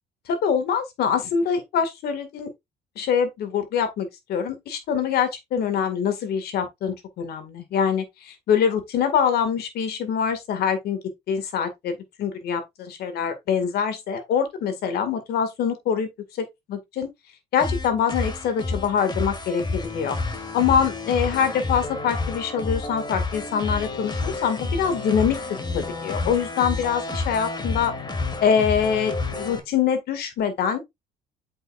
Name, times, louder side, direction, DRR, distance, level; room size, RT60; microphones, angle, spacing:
voice 1, 0.3-2.5 3.0-11.0 11.3-17.1 17.5-20.2 20.5-25.4 25.7-27.9 28.4-30.8, left 7 dB, 70° left, 2.0 m, -24 dB
sound 1, 17.6-29.6, left 3 dB, 25° left, 1.8 m, -30 dB
7.9 x 5.6 x 2.5 m
cardioid pair, 110°, 17 cm